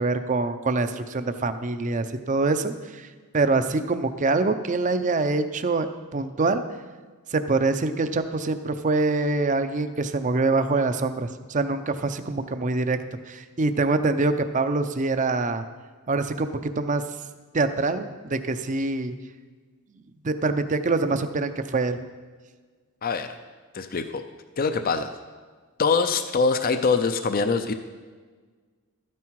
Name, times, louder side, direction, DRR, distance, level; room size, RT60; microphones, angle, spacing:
voice 1, 0.0-3.1 3.3-5.9 6.1-6.6 7.3-13.0 13.3-15.6 16.1-17.0 17.5-19.1 20.2-22.0, right 3 dB, 35° right, 10 dB, 0.6 m, -25 dB
voice 2, 23.0-23.4 23.7-24.2 24.6-25.1 25.8-27.7, left 4 dB, 40° left, 9 dB, 0.5 m, -23 dB
12.5 x 9.5 x 4.7 m, 1.4 s
head